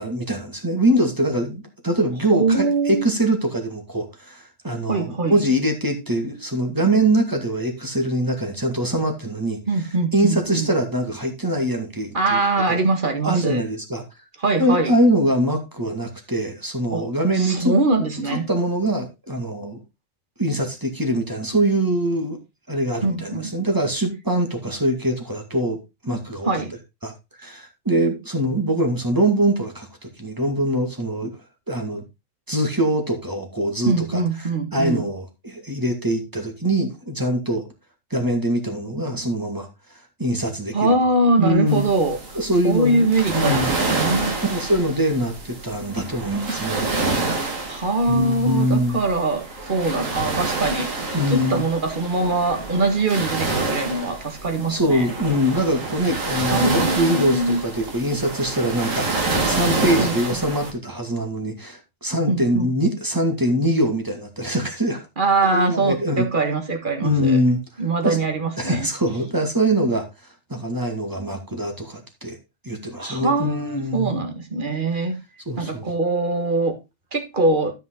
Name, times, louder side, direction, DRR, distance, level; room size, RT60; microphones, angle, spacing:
voice 1, 0.0-9.6 10.1-12.4 12.7-12.8 13.2-14.0 14.6-17.8 18.3-19.8 20.4-22.4 22.7-25.8 26.0-26.5 27.0-27.1 27.4-29.9 30.2-31.3 31.7-32.0 32.5-34.2 34.7-37.6 38.1-40.8 41.4-41.9 42.3-43.1 43.3-43.7 44.4-46.9 48.1-49.0 51.1-51.6 54.7-65.0 65.4-66.3 67.0-67.6 68.0-68.2 68.6-70.0 70.5-72.4 72.6-74.2 75.5-75.9, right 1 dB, 15° right, 4 dB, 2.1 m, -23 dB
voice 2, 2.3-3.1 4.9-5.4 9.7-10.7 12.1-13.6 14.4-14.9 16.9-17.1 17.3-18.5 23.0-23.5 26.4-26.7 33.9-35.0 40.7-42.2 42.6-44.4 47.7-50.9 51.2-55.1 56.4-57.6 60.0-60.4 62.3-62.7 65.2-67.4 67.8-68.9 73.0-75.2 75.6-76.7 77.1-77.7, right 2 dB, 40° right, 5 dB, 1.9 m, -22 dB
sound 1, 41.7-60.7, right 3 dB, 85° right, 2.3 m, -27 dB
12.5 x 5.6 x 3.8 m, 0.25 s
omnidirectional pair, 1.3 m